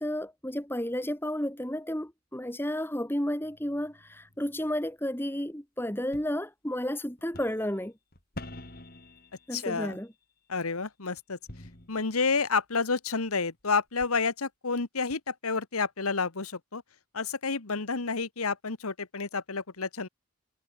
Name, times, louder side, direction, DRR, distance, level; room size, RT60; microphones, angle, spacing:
voice 1, 0.0-7.9 9.5-10.1, equal, 10° left, 1.9 m, -32 dB
sound 1, 3.4-4.8 6.1-6.3 7.2-7.7 8.1-10.1 11.3-12.3 13.3-13.4 14.0-14.1, left 1 dB, 45° left, 3.5 m, -47 dB
voice 2, 9.5-10.0 10.5-11.4 11.9-16.8 17.1-20.1, left 4 dB, 90° left, 1.5 m, -30 dB
head